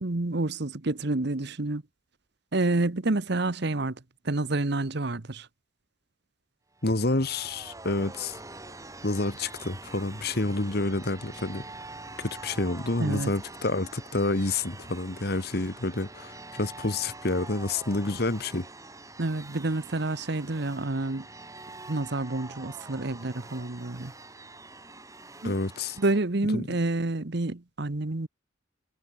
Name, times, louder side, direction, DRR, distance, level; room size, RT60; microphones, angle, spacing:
voice 1, 0.0-1.8 2.5-4.0 4.2-5.5 13.0-13.3 19.2-21.3 21.9-24.1 25.4-25.5 26.0-28.3, right 2 dB, 60° right, 1.1 m, -28 dB
voice 2, 6.8-8.4 9.0-11.6 12.2-18.7 25.4-26.0 26.5-26.7, left 2 dB, 55° left, 1.7 m, -29 dB
sound 1, 6.8-26.2, right 2 dB, 15° right, 7.2 m, -45 dB
head